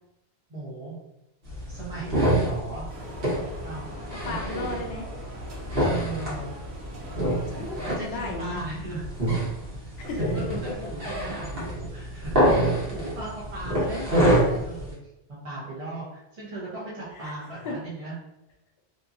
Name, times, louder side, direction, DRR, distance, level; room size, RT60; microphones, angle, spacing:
voice 1, 0.5-0.9 1.7-2.9 3.6-3.8 4.3-4.7 5.8-6.5 7.6-9.0 9.8-9.9 10.3-14.9 15.4-18.1, right 2 dB, 40° right, -6 dB, 0.7 m, -37 dB
sound 1, 1.5-14.9, right 1 dB, 60° right, 1.2 m, -27 dB
sound 2, 2.9-8.6, equal, 80° right, 1.0 m, -43 dB
voice 2, 4.2-5.1 7.3-8.6 10.0-10.4 17.1-17.3 17.6-17.8, left 3 dB, 75° left, 2 dB, 0.8 m, -35 dB
2.9 x 2.4 x 2.4 m, 0.88 s
omnidirectional pair, 1.1 m